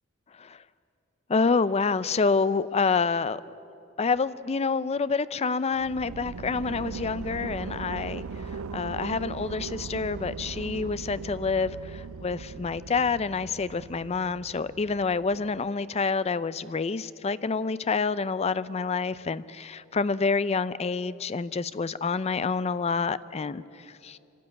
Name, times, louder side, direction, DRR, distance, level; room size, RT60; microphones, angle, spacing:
voice 1, 1.3-3.4 4.0-24.2, left 4 dB, 30° left, 16 dB, 0.4 m, -28 dB
sound 1, 5.7-15.7, right 5 dB, 75° right, 0.4 m, -39 dB
24.5 x 13.0 x 9.7 m, 2.8 s
head